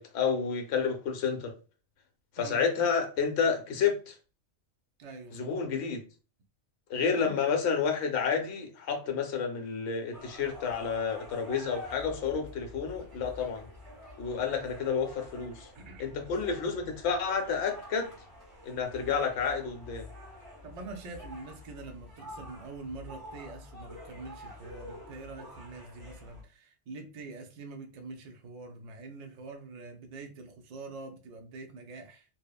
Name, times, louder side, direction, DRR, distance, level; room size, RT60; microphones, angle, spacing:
voice 1, 0.0-1.5 2.4-4.1 5.3-6.0 6.9-13.7 14.2-15.7 16.0-18.1 18.6-20.0, left 6 dB, 70° left, 0.8 m, -30 dB
voice 2, 5.0-5.5 7.0-7.3 14.5-14.7 15.8-16.1 20.6-32.2, right 3 dB, 65° right, 0.4 m, -45 dB
sound 1, 10.1-26.4, left 1 dB, 30° right, 1.0 m, -48 dB
2.9 x 2.0 x 2.2 m
omnidirectional pair, 1.2 m